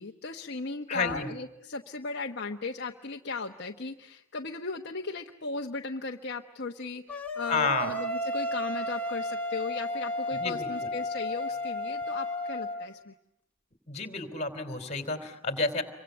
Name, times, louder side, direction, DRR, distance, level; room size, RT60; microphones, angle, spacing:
voice 1, 0.0-13.1, left 3 dB, 50° left, 3 dB, 1.1 m, -37 dB
voice 2, 0.9-1.3 7.5-7.9 10.4-10.9 13.9-15.8, left 3 dB, 30° left, 8 dB, 3.5 m, -30 dB
sound 1, 7.1-12.9, left 1 dB, 5° left, 2.3 m, -33 dB
28.0 x 24.5 x 8.1 m, 0.79 s
head